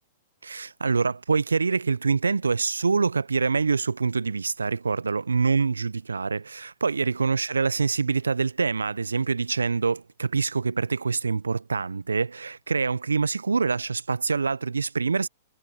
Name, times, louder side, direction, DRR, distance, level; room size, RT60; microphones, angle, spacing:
voice 1, 0.4-15.3, right 4 dB, 85° right, 0.6 m, -25 dB
figure-of-eight pair, 105°, 0 cm